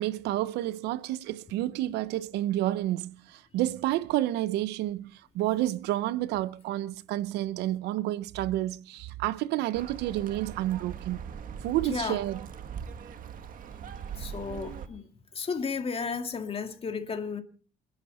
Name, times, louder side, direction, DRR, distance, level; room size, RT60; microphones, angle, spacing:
voice 1, 0.0-11.2 11.6-12.4, right 14 dB, 85° right, 0.8 m, -30 dB
sound 1, 9.7-14.9, right 7 dB, 55° right, 1.8 m, -41 dB
voice 2, 11.7-12.2 14.2-17.4, left 5 dB, 35° left, 2.5 m, -34 dB
28.5 x 11.0 x 4.3 m
cardioid pair, 110°, 17 cm